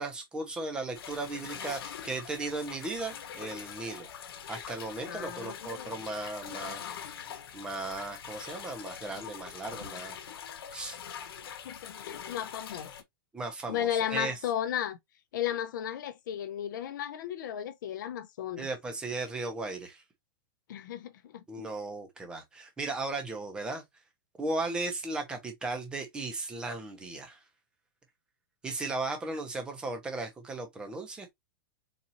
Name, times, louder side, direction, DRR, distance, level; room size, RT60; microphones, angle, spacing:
voice 1, 0.0-4.1 4.5-6.8 7.5-10.2 10.7-11.0 13.3-14.3 18.6-20.0 21.5-23.8 24.4-27.4 28.6-31.3, right 2 dB, 5° right, 0.7 m, -36 dB
sound 1, 0.9-13.0, left 8 dB, 85° left, 1.0 m, -43 dB
voice 2, 5.1-6.0 11.6-12.9 13.7-15.0 15.3-18.7 20.7-21.4, left 10 dB, 60° left, 0.7 m, -34 dB
4.1 x 2.6 x 2.8 m
supercardioid pair, 175°, 12 cm